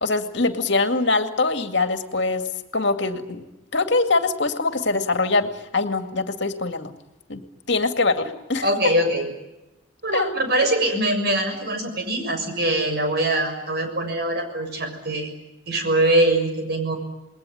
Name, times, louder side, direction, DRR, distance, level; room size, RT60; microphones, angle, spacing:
voice 1, 0.0-2.4 2.7-3.4 3.7-6.9 7.3-7.4 7.7-8.7 10.1-10.3, left 3 dB, 60° left, 7 dB, 2.2 m, -23 dB
voice 2, 8.6-9.3 10.0-15.3 15.7-17.0, right 1 dB, 50° right, 5 dB, 6.8 m, -22 dB
28.5 x 21.0 x 10.0 m, 0.98 s
head